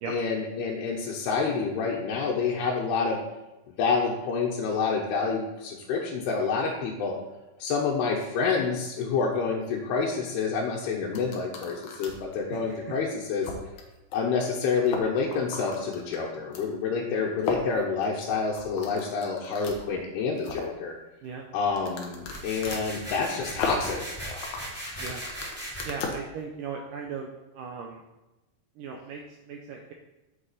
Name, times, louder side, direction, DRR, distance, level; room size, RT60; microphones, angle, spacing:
voice 1, 0.1-3.2 3.8-7.2 7.6-13.5 14.1-21.0 21.5-24.2, left 5 dB, 85° left, -4 dB, 3.0 m, -28 dB
sound 1, 11.1-12.3 12.8-12.9 13.4-13.8 14.1-14.2 14.4-14.5 14.8-16.6 17.4-19.8 20.2-20.8 21.7-26.2, left 4 dB, 65° left, 2.1 m, -36 dB
sound 2, 22.2-25.8, right 1 dB, 5° right, 2.1 m, -38 dB
voice 2, 25.9-27.3 27.6-28.0 28.8-29.2 29.5-29.9, right 6 dB, 75° right, 1 dB, 2.0 m, -37 dB
8.1 x 7.5 x 4.2 m, 1.0 s
omnidirectional pair, 4.6 m